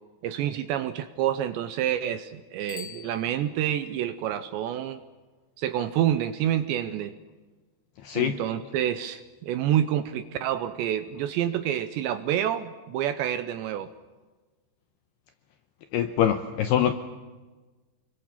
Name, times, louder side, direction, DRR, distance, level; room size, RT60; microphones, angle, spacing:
voice 1, 0.2-5.0 5.6-7.1 8.2-13.9, right 11 dB, 75° right, 11 dB, 2.7 m, -28 dB
Bicycle bell, 2.6-4.0, left 8 dB, 60° left, 1.5 m, -45 dB
voice 2, 8.0-8.4 15.9-16.9, left 10 dB, 80° left, 8 dB, 2.4 m, -24 dB
29.5 x 22.5 x 7.3 m, 1.3 s
omnidirectional pair, 5.8 m